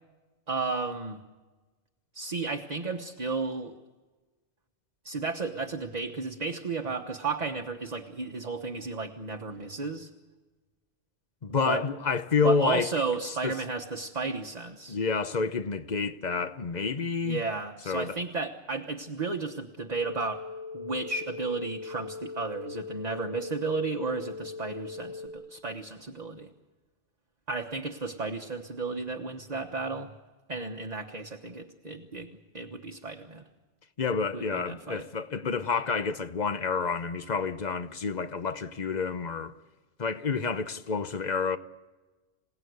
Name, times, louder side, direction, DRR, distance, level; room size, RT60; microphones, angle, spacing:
voice 1, 0.5-1.2 2.1-3.8 5.0-10.1 11.6-11.8 12.4-15.0 17.2-20.4 20.7-26.5 27.5-30.1 30.5-33.4 34.3-35.1, right 4 dB, 35° right, 1.3 m, -33 dB
voice 2, 11.4-12.9 13.4-13.5 14.9-17.4 17.9-18.2 34.0-39.5 40.0-41.6, left 5 dB, 40° left, 1.0 m, -29 dB
sound 1, 19.9-25.3, left 5 dB, 15° left, 4.1 m, -40 dB
27.5 x 17.5 x 9.5 m
omnidirectional pair, 1.2 m